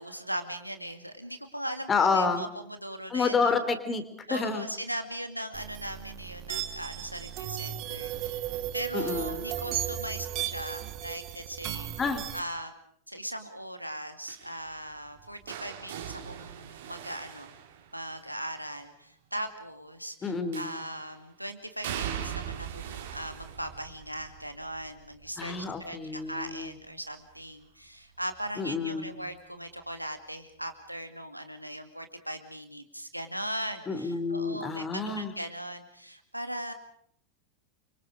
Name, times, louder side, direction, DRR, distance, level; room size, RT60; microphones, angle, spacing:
voice 1, 0.0-3.5 4.3-8.4 8.7-11.9 12.3-12.7 13.1-17.5 17.9-36.7, right 1 dB, 90° right, 7 dB, 2.3 m, -39 dB
voice 2, 1.9-2.4 3.1-4.0 4.3-4.6 8.9-9.4 12.0-12.3 20.2-20.8 25.4-26.7 28.6-29.2 33.9-35.3, left 4 dB, 20° left, 10 dB, 3.3 m, -29 dB
sound 1, 5.5-12.4, right 12 dB, 40° right, 1.8 m, -35 dB
sound 2, 14.3-18.3 20.5-21.1 21.8-27.6 28.0-28.4 29.6-29.7, right 9 dB, 60° right, 3.9 m, -41 dB
29.0 x 25.5 x 5.0 m, 0.64 s
figure-of-eight pair, 90°, 0 cm